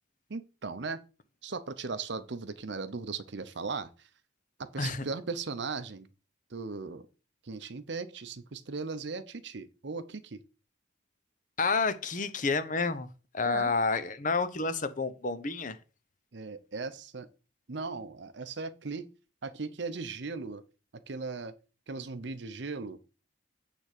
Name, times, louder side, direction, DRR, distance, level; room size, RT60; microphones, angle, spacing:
voice 1, 0.3-1.0 1.4-3.9 4.6-6.1 6.5-7.1 7.4-10.4 13.5-13.7 16.3-17.3 17.7-19.1 19.4-20.6 20.9-21.5 21.9-23.0, right 4 dB, 60° right, 0.7 m, -37 dB
voice 2, 11.6-13.1 13.3-15.8, left 4 dB, 40° left, 0.8 m, -29 dB
9.2 x 3.6 x 6.6 m
head